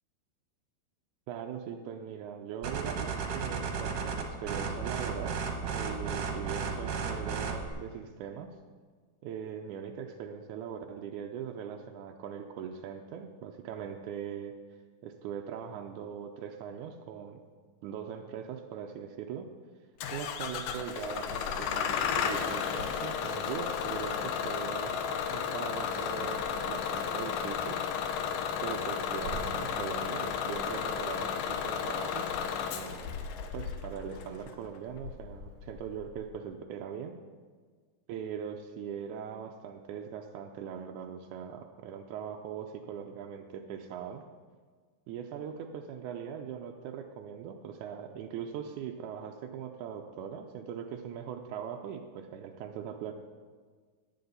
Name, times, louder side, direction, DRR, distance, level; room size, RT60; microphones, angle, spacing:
voice 1, 1.3-5.4 5.7-8.5 9.2-14.6 15.0-17.4 17.8-19.5 20.1-24.9 25.3-27.8 28.6-32.3 32.7-33.0 33.5-37.2 38.1-44.2 45.1-53.1, right 8 dB, 85° right, 4 dB, 1.7 m, -40 dB
sound 1, 2.6-7.7, right 5 dB, 60° right, 2.0 m, -34 dB
Bus / Engine starting, 20.0-36.2, left 7 dB, 75° left, 2.3 m, -33 dB
Drawer open or close, 25.6-27.8 28.2-30.2, right 2 dB, 25° left, 4.9 m, -45 dB
17.5 x 8.5 x 4.1 m, 1.5 s
omnidirectional pair, 4.2 m